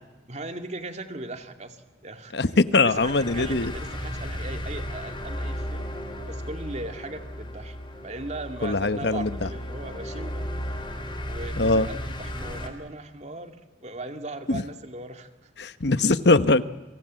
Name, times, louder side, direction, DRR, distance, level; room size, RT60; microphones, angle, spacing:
voice 1, 0.3-2.6 2.8-5.9 6.3-7.8 8.0-10.5 11.2-15.3, right 2 dB, 40° right, 6 dB, 2.4 m, -38 dB
voice 2, 2.3-3.7 8.6-9.3 11.6-11.9 14.5-14.6 15.6-16.6, left 3 dB, 65° left, 13 dB, 1.0 m, -21 dB
sound 1, 2.8-12.7, equal, 25° left, 4.0 m, -34 dB
30.0 x 26.0 x 7.6 m, 1.1 s
head